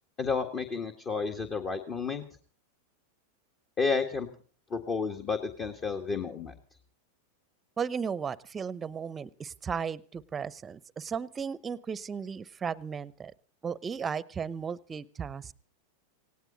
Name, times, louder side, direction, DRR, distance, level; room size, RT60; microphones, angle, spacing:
voice 1, 0.2-2.2 3.8-4.3 4.7-6.5, left 4 dB, 30° left, 5 dB, 1.7 m, -31 dB
voice 2, 7.8-13.3 13.6-15.5, right 6 dB, 20° right, 21 dB, 0.8 m, -35 dB
18.5 x 17.0 x 4.0 m, 0.40 s
hypercardioid pair, 100°, 0 cm